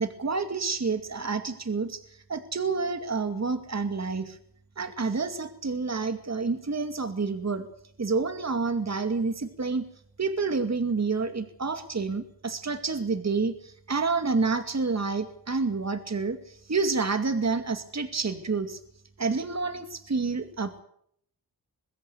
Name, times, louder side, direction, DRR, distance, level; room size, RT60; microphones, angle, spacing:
voice 1, 0.0-4.4 4.8-7.7 8.0-9.9 10.2-18.8 19.2-20.8, right 4 dB, 40° right, 8 dB, 2.3 m, -29 dB
22.0 x 16.0 x 8.4 m, 0.66 s
wide cardioid pair, 95°, 40 cm